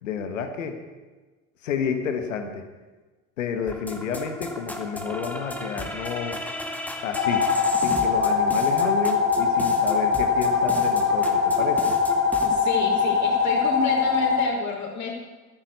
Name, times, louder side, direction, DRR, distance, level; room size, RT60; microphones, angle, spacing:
voice 1, 0.0-0.8 1.6-2.6 3.4-6.4 7.0-7.5 7.8-12.0, left 6 dB, 85° left, 7 dB, 1.7 m, -30 dB
sound 1, 3.7-12.5, left 1 dB, 5° left, 2.2 m, -35 dB
sound 2, 7.2-14.4, left 5 dB, 65° left, 3.5 m, -22 dB
voice 2, 12.4-15.1, left 4 dB, 50° left, 0 dB, 5.0 m, -30 dB
12.0 x 10.0 x 8.3 m, 1.3 s
hypercardioid pair, 65°, 37 cm